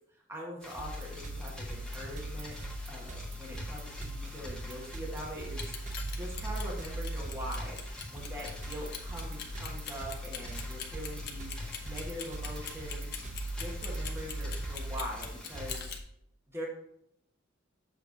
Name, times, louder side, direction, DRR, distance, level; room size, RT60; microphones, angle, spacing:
voice 1, 0.1-5.9 6.1-16.0 16.5-16.7, equal, 15° right, -4 dB, 1.3 m, -43 dB
sound 1, 0.6-15.8, left 1 dB, 5° left, 1.5 m, -47 dB
sound 2, 0.8-16.0, right 1 dB, 40° right, 0.7 m, -40 dB
Clock, 5.5-16.0, left 8 dB, 55° left, 1.0 m, -41 dB
7.4 x 3.3 x 5.1 m, 0.72 s
head